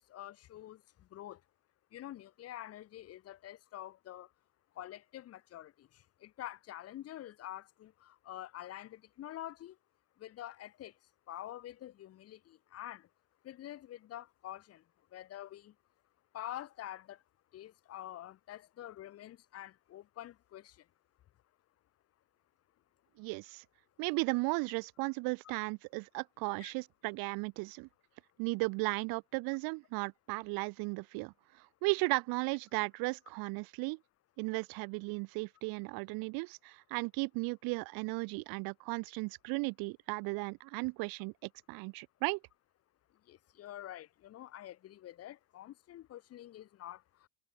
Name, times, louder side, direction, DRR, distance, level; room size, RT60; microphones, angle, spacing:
voice 1, 0.0-1.4 1.9-4.3 4.7-9.8 10.2-11.0 11.3-13.1 13.4-14.8 15.1-15.7 16.3-17.2 17.5-20.9 26.6-26.7 28.4-28.6 43.2-47.3, left 13 dB, 40° left, 1.3 m, -47 dB
voice 2, 23.2-23.6 24.0-27.9 28.4-31.3 31.8-34.0 34.4-42.4, right 28 dB, 60° right, 0.7 m, -35 dB
cardioid pair, 145°, 39 cm